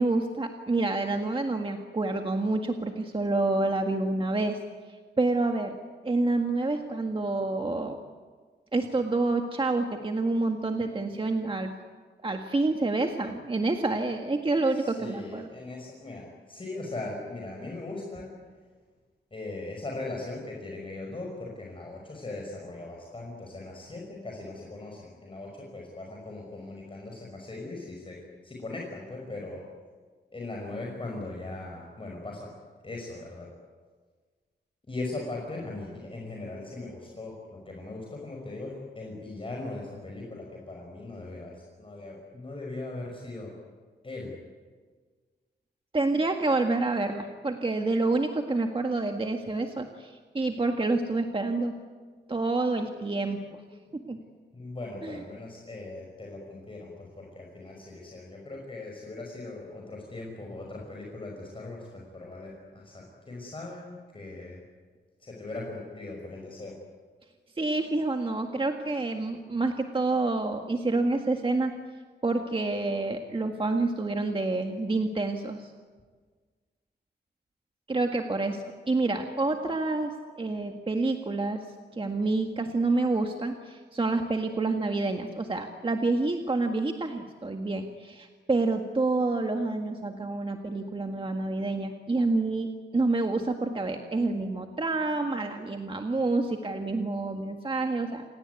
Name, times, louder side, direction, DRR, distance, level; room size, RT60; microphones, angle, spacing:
voice 1, 0.0-4.6 4.9-5.7 6.0-8.0 8.7-11.7 12.2-15.5 45.9-51.8 52.3-53.6 53.9-54.2 55.0-55.2 67.6-71.7 72.2-75.7 77.9-81.7 81.9-98.2, right 2 dB, 30° right, 4 dB, 1.8 m, -28 dB
voice 2, 14.7-18.3 19.3-29.7 30.3-32.5 32.8-33.5 34.9-43.6 44.0-44.3 53.5-53.9 54.5-64.6 65.2-66.8, left 2 dB, 30° left, -1 dB, 5.7 m, -39 dB
28.0 x 18.0 x 9.7 m, 1.5 s
wide cardioid pair, 110°, 18 cm